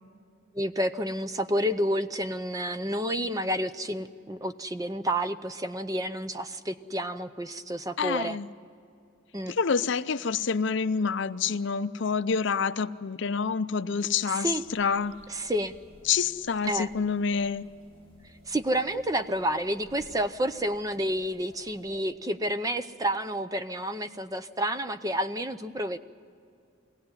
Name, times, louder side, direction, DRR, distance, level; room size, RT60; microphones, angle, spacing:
voice 1, 0.5-8.4 9.3-9.5 14.3-14.6 15.3-15.7 16.7-16.9 18.5-26.0, equal, 15° right, 10 dB, 0.6 m, -30 dB
voice 2, 8.0-8.5 9.5-15.1 16.1-17.7, left 6 dB, 60° left, 13 dB, 0.5 m, -27 dB
sound 1, 14.5-22.0, equal, 80° right, 4.8 m, -56 dB
23.0 x 17.0 x 9.6 m, 2.5 s
head